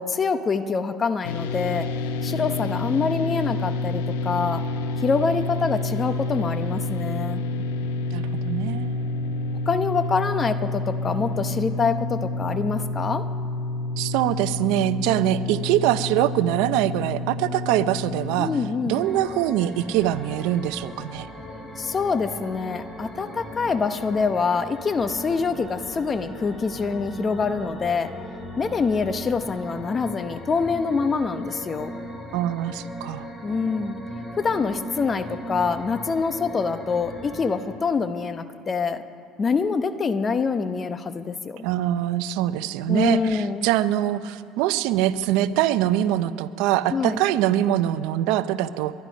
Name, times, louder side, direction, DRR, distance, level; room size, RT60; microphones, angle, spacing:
voice 1, 0.0-1.9 2.2-4.6 5.0-7.4 9.7-13.2 18.4-19.0 21.8-28.1 28.6-32.0 33.4-34.0 34.4-39.0 39.4-41.6 42.9-43.7 46.9-47.2, left 5 dB, 30° left, 11 dB, 0.8 m, -25 dB
sound 1, 1.2-18.7, left 2 dB, 90° left, 0.8 m, -29 dB
voice 2, 8.1-9.1 14.0-18.5 18.9-21.3 32.3-33.3 41.6-48.9, right 12 dB, 75° right, 14 dB, 0.6 m, -23 dB
sound 2, 18.9-37.6, equal, 15° left, 3.6 m, -38 dB
22.5 x 10.5 x 5.2 m, 2.7 s
supercardioid pair, 95°, 0 cm